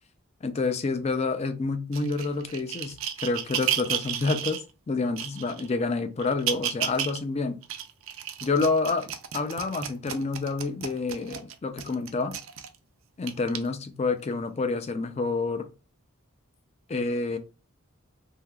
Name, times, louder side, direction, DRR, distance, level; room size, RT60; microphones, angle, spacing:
voice 1, 0.4-3.0 3.2-4.6 4.9-7.6 8.4-9.1 9.3-12.4 13.2-15.7 16.9-17.4, left 3 dB, 30° left, 0.4 m, -28 dB
sound 1, 1.9-4.6 5.2-5.7 6.2-7.2 7.6-12.7 13.3-13.6 14.3-14.4, right 10 dB, 60° right, 0.4 m, -32 dB
3.4 x 2.7 x 2.2 m
head